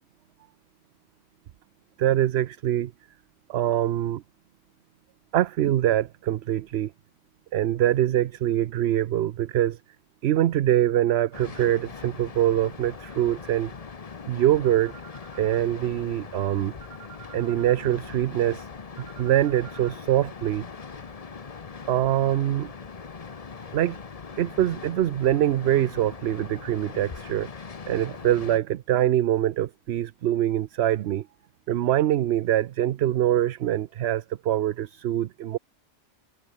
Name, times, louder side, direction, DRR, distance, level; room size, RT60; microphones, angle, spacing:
voice 1, 2.0-2.9 3.5-4.2 5.3-6.9 7.5-9.8 10.2-13.7 14.3-14.9 15.3-16.7 17.3-18.7 19.0-20.6 21.9-22.7 23.7-24.0 24.4-27.5 27.9-31.3 31.7-35.6, right 12 dB, 65° right, 0.8 m, -24 dB
sound 1, 11.3-28.6, left 5 dB, 35° left, 0.9 m, -41 dB
omnidirectional pair, 1.3 m